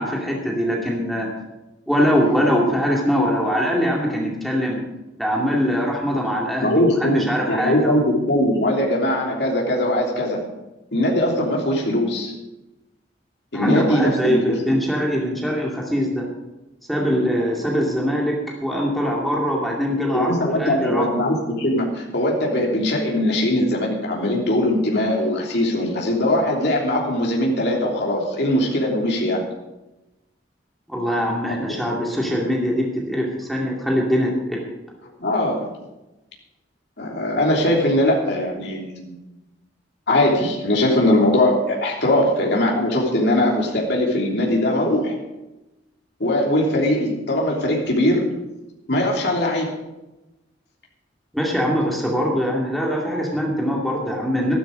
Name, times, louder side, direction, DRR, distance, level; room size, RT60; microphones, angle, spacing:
voice 1, 0.0-1.3 1.9-4.8 5.2-8.0 13.5-16.3 16.9-21.1 30.9-34.7 51.3-54.6, equal, ahead, -2 dB, 2.3 m, -22 dB
voice 2, 6.6-10.4 10.9-12.3 13.5-14.5 20.1-29.4 31.7-31.8 35.2-35.7 37.0-39.2 40.1-45.2 46.2-48.3 48.9-49.8, left 1 dB, 65° left, -1 dB, 3.2 m, -21 dB
13.0 x 12.5 x 5.2 m, 1.0 s
head